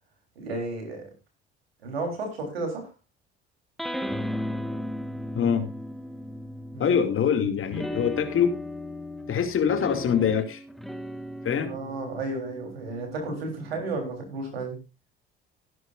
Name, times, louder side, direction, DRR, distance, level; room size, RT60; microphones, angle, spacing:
voice 1, 0.4-1.1 1.8-2.9 6.7-7.0 11.6-14.8, right 2 dB, 90° right, 3.8 m, -33 dB
sound 1, 3.8-7.2 7.7-14.5, left 1 dB, ahead, 1.4 m, -36 dB
voice 2, 5.3-5.7 6.8-8.6 9.3-10.6 11.4-11.7, left 7 dB, 45° left, 2.5 m, -24 dB
17.0 x 11.0 x 2.6 m
hypercardioid pair, 55°, 29 cm